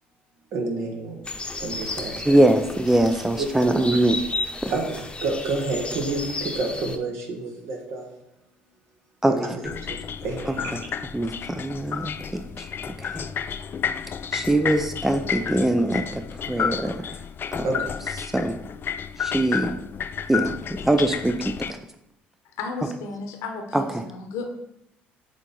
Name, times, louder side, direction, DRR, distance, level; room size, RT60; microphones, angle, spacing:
voice 1, 0.5-1.2 1.6-2.3 3.4-3.8 4.7-4.9 5.2-8.1 9.3-9.5 9.8-10.7 17.6-17.9, right 3 dB, 65° right, 1 dB, 1.7 m, -29 dB
sound 1, 1.2-7.0, left 2 dB, 20° left, 1.0 m, -33 dB
voice 2, 2.2-4.2 4.6-4.7 9.2-9.6 10.5-10.8 11.1-13.3 14.3-17.1 17.5-17.7 18.2-18.6 19.2-19.8 20.3-21.8 23.7-24.0, right 1 dB, 5° right, 7 dB, 0.5 m, -23 dB
sound 2, 9.6-21.7, left 7 dB, 45° left, 0.4 m, -31 dB
voice 3, 22.6-24.5, left 4 dB, 70° left, 4 dB, 1.2 m, -33 dB
7.1 x 3.8 x 4.3 m, 0.81 s
hypercardioid pair, 55°, 5 cm